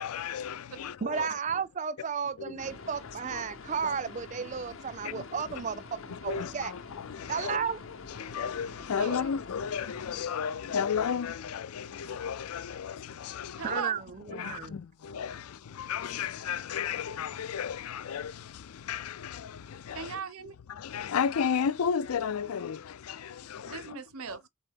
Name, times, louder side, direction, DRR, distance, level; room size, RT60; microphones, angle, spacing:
voice 1, 0.0-1.3 2.4-2.6 3.3-3.4 3.8-3.9 5.0-5.2 5.5-5.6 6.1-7.6 8.1-13.8 14.3-15.4 15.8-18.3 18.9-19.5 19.9-20.2 20.8-23.8, left 7 dB, 80° left, 0.4 m, -33 dB
voice 2, 1.0-6.7 7.3-7.8 13.6-14.8, right 6 dB, 35° right, 0.3 m, -33 dB
sound 1, 2.6-10.2, left 4 dB, 65° left, 0.8 m, -46 dB
voice 3, 9.0-9.3 13.6-14.0 19.9-20.6 23.6-24.5, right 6 dB, 75° right, 0.7 m, -38 dB
4.0 x 3.7 x 3.5 m
head